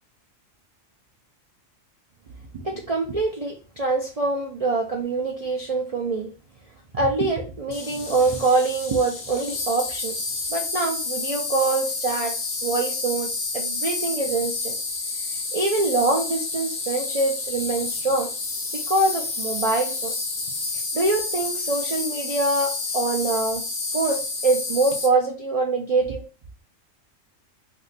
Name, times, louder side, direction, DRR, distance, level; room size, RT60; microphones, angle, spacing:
voice 1, 2.5-6.3 6.9-10.1 10.5-14.7 15.5-18.3 18.7-20.1 20.9-23.6 23.9-26.2, right 3 dB, 55° right, 0 dB, 0.4 m, -24 dB
Insect, 7.7-25.1, left 3 dB, 50° left, 0.7 m, -30 dB
2.7 x 2.5 x 3.9 m, 0.33 s
omnidirectional pair, 1.4 m